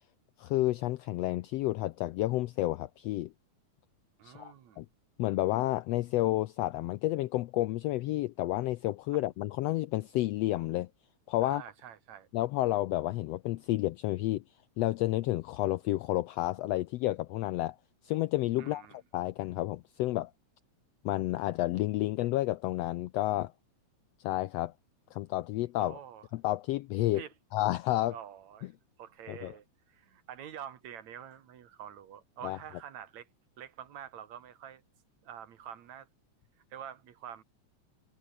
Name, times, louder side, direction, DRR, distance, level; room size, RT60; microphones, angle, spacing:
voice 1, 0.4-3.3 4.2-4.9 5.2-10.9 11.3-11.6 12.3-14.4 14.8-17.8 18.0-18.8 19.1-20.3 21.0-23.5 24.2-24.7 25.1-26.0 26.3-27.2 27.5-28.2 29.3-29.5 32.4-32.6, left 16 dB, 90° left, 1.4 m, -30 dB
voice 2, 4.2-4.8 11.4-12.3 18.6-19.0 25.8-26.3 27.1-27.3 28.1-28.7 29.0-33.3 33.6-34.8 35.2-36.1 36.7-37.4, right 9 dB, 65° right, 2.9 m, -47 dB
omnidirectional pair, 3.5 m